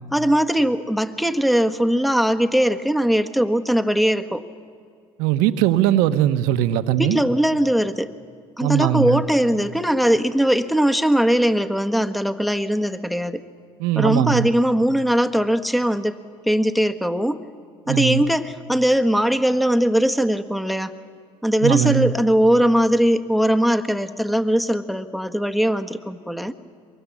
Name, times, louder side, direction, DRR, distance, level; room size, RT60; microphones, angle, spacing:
voice 1, 0.1-4.4 7.0-8.1 8.6-13.4 13.9-16.2 16.5-17.4 17.9-20.9 21.4-26.5, equal, ahead, 1.5 m, -20 dB
voice 2, 5.2-7.2 8.6-9.2 13.8-14.5 17.9-18.2 21.6-22.1, right 12 dB, 80° right, 1.1 m, -20 dB
24.0 x 23.5 x 7.3 m
supercardioid pair, 70°, 14 cm